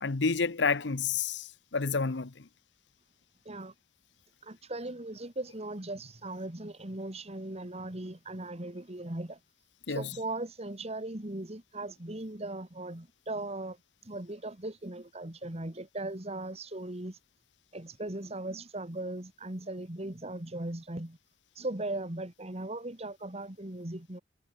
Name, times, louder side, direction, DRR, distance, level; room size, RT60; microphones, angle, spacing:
voice 1, 0.0-2.4 9.9-10.1, left 4 dB, 75° left, 0.9 m, -30 dB
voice 2, 4.4-9.4 9.9-13.8 14.0-17.2 17.7-21.2 21.6-24.2, right 2 dB, 35° right, 2.2 m, -38 dB
head